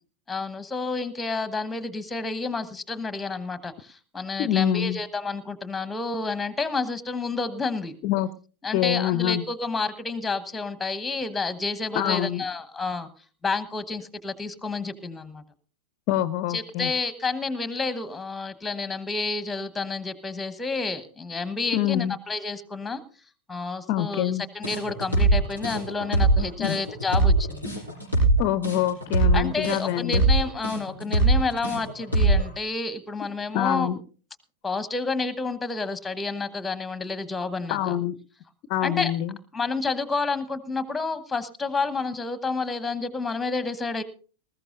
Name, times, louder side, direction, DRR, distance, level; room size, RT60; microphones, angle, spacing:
voice 1, 0.3-7.9 8.6-13.1 13.4-15.4 16.5-23.0 23.5-27.6 29.3-33.9 34.6-37.8 38.8-39.1 39.5-44.0, left 3 dB, 10° left, 14 dB, 1.2 m, -30 dB
voice 2, 4.4-5.0 8.0-8.3 8.7-9.4 11.9-12.4 16.1-16.9 21.7-22.2 23.9-24.5 26.6-26.8 28.4-30.2 33.5-34.0 37.7-38.2 38.7-39.4, left 12 dB, 45° left, 16 dB, 0.6 m, -25 dB
sound 1, 24.6-32.5, right 2 dB, 85° right, 6.8 m, -22 dB
20.0 x 15.0 x 2.6 m, 0.38 s
figure-of-eight pair, 90°, 0 cm